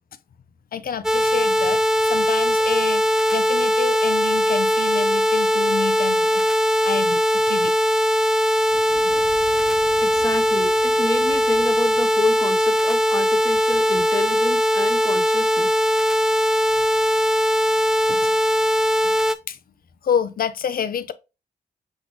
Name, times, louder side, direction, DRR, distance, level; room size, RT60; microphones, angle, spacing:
voice 1, 0.7-6.5 6.8-7.8 9.0-9.2 18.1-18.3 19.5-19.6 20.0-21.1, left 8 dB, 50° left, 0.5 m, -28 dB
sound 1, 1.0-19.3, equal, 5° right, 0.5 m, -20 dB
Fire / Explosion, 8.7-13.5, left 1 dB, 85° left, 2.0 m, -45 dB
voice 2, 10.0-15.7, left 3 dB, 20° left, 0.9 m, -28 dB
6.2 x 2.6 x 3.0 m
supercardioid pair, 40°, 19 cm